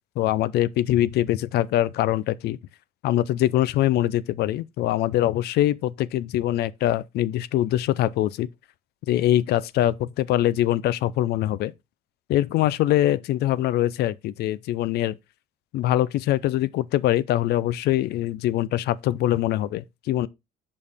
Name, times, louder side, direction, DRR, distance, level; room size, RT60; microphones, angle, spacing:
voice 1, 0.2-2.6 3.0-8.5 9.1-11.7 12.3-15.2 15.7-20.3, left 13 dB, 75° left, 0.5 m, -23 dB
6.5 x 5.3 x 3.5 m
cardioid pair, 110°, 17 cm